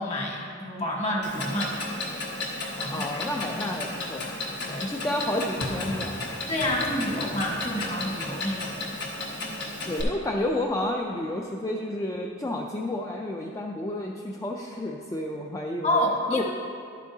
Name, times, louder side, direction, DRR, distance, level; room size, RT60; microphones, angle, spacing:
voice 1, 0.0-1.7 2.8-3.6 4.6-4.8 6.5-8.7 15.8-16.4, left 1 dB, 35° left, -1 dB, 1.4 m, -29 dB
Clock, 1.2-10.0, left 2 dB, 65° left, 1.4 m, -34 dB
voice 2, 2.9-4.3 4.8-6.3 9.9-16.4, left 1 dB, 15° left, 0 dB, 0.4 m, -30 dB
sound 1, 5.6-10.0, left 1 dB, 85° left, 1.0 m, -41 dB
11.5 x 8.3 x 2.7 m, 2.4 s
head